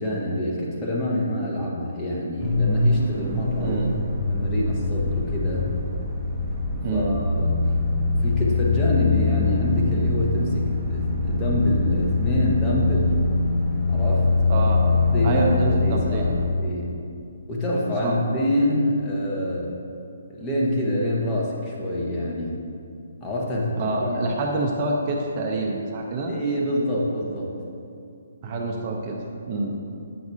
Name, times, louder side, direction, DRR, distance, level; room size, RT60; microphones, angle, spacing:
voice 1, 0.0-3.8 4.3-5.7 6.9-7.5 8.1-13.1 13.9-14.3 15.1-16.9 17.5-19.7 20.3-22.6 23.2-24.2 26.3-27.5, left 1 dB, 15° left, -5 dB, 1.1 m, -26 dB
sound 1, 2.4-16.5, left 3 dB, 10° right, 1.0 m, -23 dB
voice 2, 6.8-7.2 14.5-14.8 15.2-16.3 18.0-18.1 23.8-26.3 28.4-29.2 29.5-29.7, right 2 dB, 35° right, 0 dB, 0.7 m, -26 dB
8.6 x 5.9 x 2.7 m, 2.5 s
hypercardioid pair, 150°, 0 cm